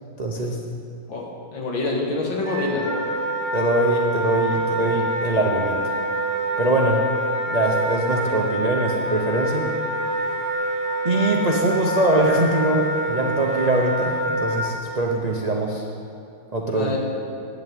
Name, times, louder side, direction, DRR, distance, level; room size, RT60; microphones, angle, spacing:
voice 1, 0.2-0.6 3.5-5.8 6.6-7.0 7.5-9.7 11.0-15.8 16.5-17.0, right 2 dB, 60° right, -1 dB, 0.4 m, -22 dB
voice 2, 1.5-2.9 16.7-17.0, left 2 dB, 70° left, -2 dB, 2.6 m, -25 dB
Wind instrument woodwind instrument, 2.4-14.6, right 1 dB, 25° right, 3.0 m, -26 dB
9.1 x 8.4 x 9.2 m, 2.5 s
omnidirectional pair, 2.2 m